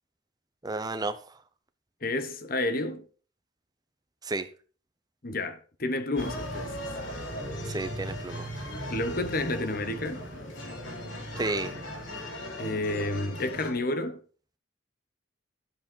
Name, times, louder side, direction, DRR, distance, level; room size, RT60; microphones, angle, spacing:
voice 1, 0.6-1.2 4.2-4.5 7.6-8.5 11.4-11.7, right 2 dB, 20° right, 0.8 m, -31 dB
voice 2, 2.0-3.0 5.2-6.7 8.9-10.2 12.6-14.2, left 2 dB, 45° left, 1.1 m, -30 dB
sound 1, 6.2-13.7, equal, 75° left, 3.4 m, -37 dB
11.5 x 7.8 x 4.5 m
head